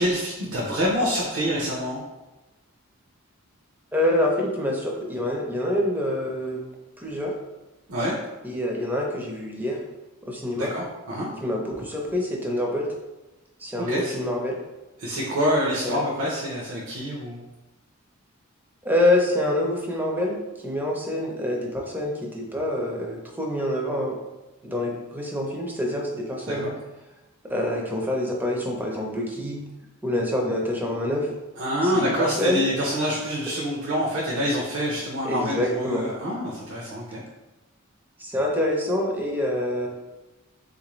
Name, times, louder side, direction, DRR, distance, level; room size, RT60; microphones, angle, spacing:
voice 1, 0.0-2.0 7.9-8.1 10.6-11.3 13.9-14.1 15.0-17.4 26.5-26.7 31.6-37.2, equal, 70° right, -5 dB, 0.6 m, -26 dB
voice 2, 3.9-6.6 7.0-7.3 8.4-9.8 10.3-10.7 11.4-12.9 13.6-14.6 15.8-16.0 18.8-20.4 20.6-24.2 24.6-26.7 27.5-29.6 30.0-31.3 31.8-32.6 35.2-36.1 38.2-39.9, left 1 dB, 10° right, -1 dB, 0.5 m, -26 dB
3.5 x 2.5 x 3.0 m, 1.1 s
head